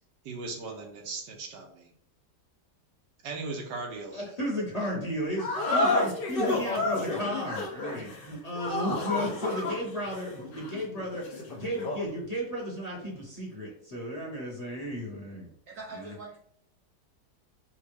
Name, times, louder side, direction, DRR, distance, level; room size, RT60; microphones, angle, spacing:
voice 1, 0.2-1.9 3.2-4.3, right 3 dB, 80° right, 2 dB, 1.4 m, -38 dB
voice 2, 4.1-15.5 15.9-16.1, equal, 25° left, -4 dB, 1.0 m, -34 dB
sound 1, 5.4-12.1, left 2 dB, 50° left, 0.7 m, -30 dB
voice 3, 15.7-16.4, right 3 dB, 60° right, -2 dB, 0.9 m, -42 dB
5.1 x 2.3 x 3.3 m, 0.66 s
omnidirectional pair, 1.9 m